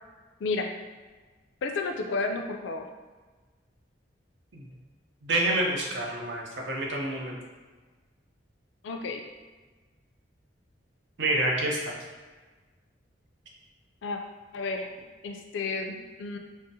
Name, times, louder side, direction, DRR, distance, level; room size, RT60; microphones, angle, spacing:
voice 1, 0.4-0.7 1.6-2.9 8.8-9.2 14.0-14.2 14.5-14.9 15.2-16.4, left 3 dB, 75° left, 4 dB, 0.3 m, -31 dB
voice 2, 5.2-7.4 11.2-11.9, right 1 dB, 75° right, -2 dB, 0.6 m, -28 dB
3.7 x 2.0 x 2.6 m, 1.4 s
head